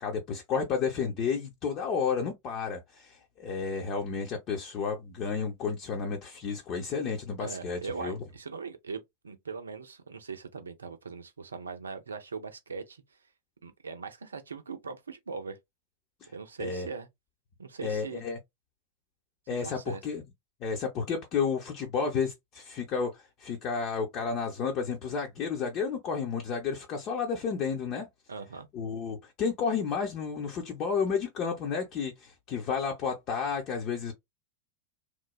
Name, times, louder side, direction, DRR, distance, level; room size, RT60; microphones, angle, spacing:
voice 1, 0.0-8.2 16.6-16.9 17.8-18.4 19.5-20.2 20.6-28.1 28.7-34.1, left 6 dB, 35° left, 0.7 m, -31 dB
voice 2, 7.4-13.0 13.6-15.6 16.3-17.1 17.6-18.2 19.6-20.0 28.3-28.7, right 5 dB, 75° right, 0.6 m, -40 dB
3.1 x 2.2 x 2.2 m
figure-of-eight pair, 90°, 0 cm